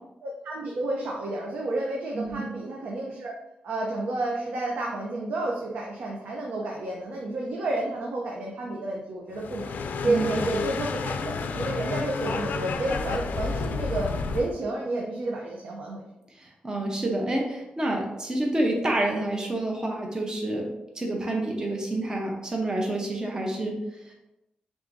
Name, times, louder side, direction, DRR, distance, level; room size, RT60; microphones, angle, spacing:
voice 1, 0.2-3.4 3.6-9.7 10.0-14.1 14.3-16.1, right 2 dB, 90° right, -2 dB, 0.6 m, -30 dB
voice 2, 2.1-2.5 10.0-10.3 16.4-20.7 20.9-23.8 24.1-24.2, right 1 dB, 25° right, 0 dB, 0.7 m, -28 dB
sound 1, 9.3-14.5, left 4 dB, 80° left, 0.3 m, -30 dB
4.9 x 3.5 x 2.6 m, 0.92 s
wide cardioid pair, 115°, 3 cm